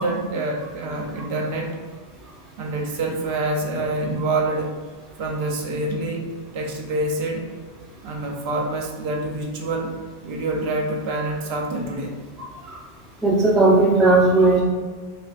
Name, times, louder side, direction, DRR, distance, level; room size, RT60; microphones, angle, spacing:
voice 1, 0.0-1.8 2.6-4.8 5.2-7.5 8.0-9.9 10.2-12.2, right 2 dB, 75° right, 1 dB, 0.8 m, -26 dB
voice 2, 12.4-12.8 13.2-14.6, right 2 dB, ahead, -5 dB, 0.4 m, -17 dB
5.0 x 2.2 x 2.4 m, 1.5 s
omnidirectional pair, 1.1 m